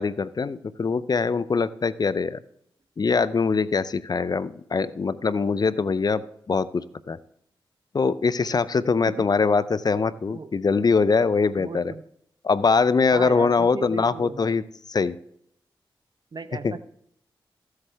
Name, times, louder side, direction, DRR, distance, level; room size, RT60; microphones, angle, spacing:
voice 1, 0.0-2.4 3.0-6.2 6.5-7.2 7.9-11.9 12.4-14.6 14.9-15.2 16.6-16.7, left 4 dB, 45° left, 16 dB, 0.5 m, -23 dB
voice 2, 11.6-12.0 13.1-14.4 16.3-16.9, right 4 dB, 50° right, 11 dB, 0.8 m, -36 dB
14.5 x 8.0 x 3.4 m, 0.72 s
cardioid pair, 45°, 9 cm